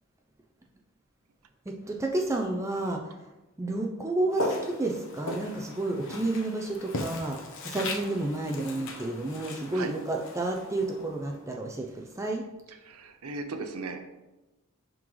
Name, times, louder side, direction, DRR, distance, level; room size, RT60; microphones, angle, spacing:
voice 1, 1.7-3.0 3.6-12.4, right 2 dB, 15° right, 0 dB, 0.5 m, -31 dB
Walk footsteps, 4.3-11.4, left 2 dB, 60° left, 0.9 m, -38 dB
voice 2, 12.7-14.0, right 3 dB, 90° right, 6 dB, 0.7 m, -37 dB
11.0 x 3.8 x 3.1 m, 1.1 s
head